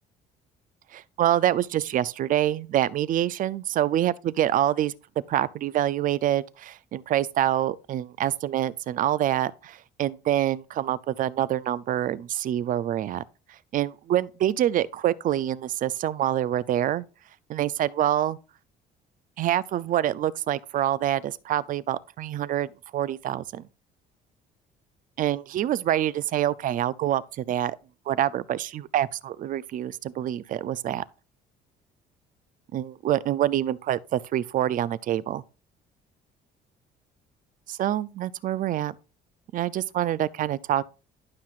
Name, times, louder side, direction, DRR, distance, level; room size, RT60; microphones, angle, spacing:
voice 1, 0.9-4.9 5.3-13.2 13.5-17.0 17.5-18.4 19.4-23.7 25.2-27.8 28.1-31.0 32.7-35.4 37.7-38.9 39.5-40.8, right 12 dB, 55° right, 0.5 m, -26 dB
11.5 x 5.7 x 2.4 m
cardioid pair, 110°, 17 cm